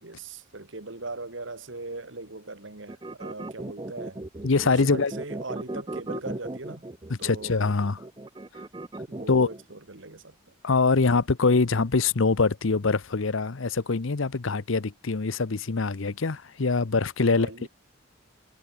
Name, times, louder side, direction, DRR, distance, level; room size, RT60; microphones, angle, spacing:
voice 1, 0.0-4.2 4.6-6.8 7.2-7.7 9.1-10.4 17.3-17.7, right 3 dB, 65° right, 2.0 m, -39 dB
sound 1, 2.9-9.6, right 2 dB, 20° right, 0.6 m, -37 dB
voice 2, 4.4-5.1 7.2-8.0 9.3-9.5 10.6-17.7, left 4 dB, 75° left, 0.8 m, -24 dB
head